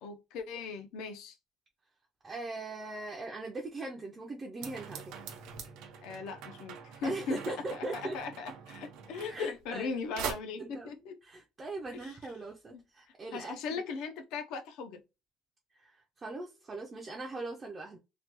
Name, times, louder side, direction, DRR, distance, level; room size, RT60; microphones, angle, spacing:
voice 1, 0.0-1.4 6.0-11.2 11.9-12.2 12.7-12.8 13.3-15.0, left 5 dB, 80° left, 0.5 m, -39 dB
voice 2, 2.2-5.1 7.0-8.2 9.3-10.0 10.6-13.8 15.8-18.0, right 2 dB, 20° right, 0.4 m, -40 dB
sound 1, 4.6-9.9 10.2-10.3, right 7 dB, 85° right, 0.6 m, -43 dB
3.2 x 2.2 x 2.9 m
cardioid pair, 175°, 0 cm